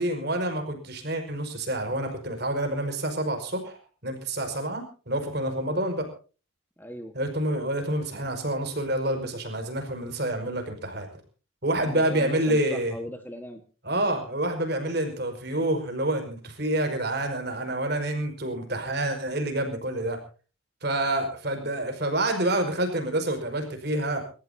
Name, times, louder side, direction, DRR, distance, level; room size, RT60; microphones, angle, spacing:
voice 1, 0.0-6.1 7.1-11.1 11.6-13.0 13.8-20.2 20.8-24.2, right 1 dB, 50° right, 5 dB, 5.3 m, -28 dB
voice 2, 6.8-7.1 11.8-13.6, equal, 10° left, 6 dB, 1.5 m, -38 dB
29.0 x 14.5 x 2.8 m, 0.36 s
head